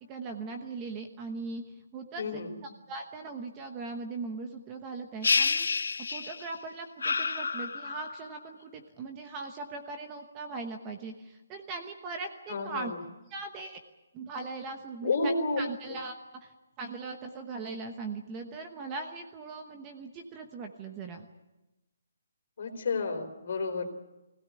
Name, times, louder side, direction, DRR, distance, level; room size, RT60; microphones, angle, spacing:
voice 1, 0.1-1.6 1.9-12.9 13.3-13.8 14.1-16.5 16.8-21.3, right 3 dB, 15° right, 5 dB, 1.1 m, -40 dB
voice 2, 2.2-2.6 12.5-13.0 15.0-15.6 15.9-16.0 22.6-23.9, left 3 dB, 45° left, 5 dB, 4.1 m, -31 dB
sound 1, 5.2-6.6 7.0-8.3, left 4 dB, 85° left, 1.1 m, -29 dB
23.0 x 16.5 x 9.7 m, 1.0 s
hypercardioid pair, 175°, 0 cm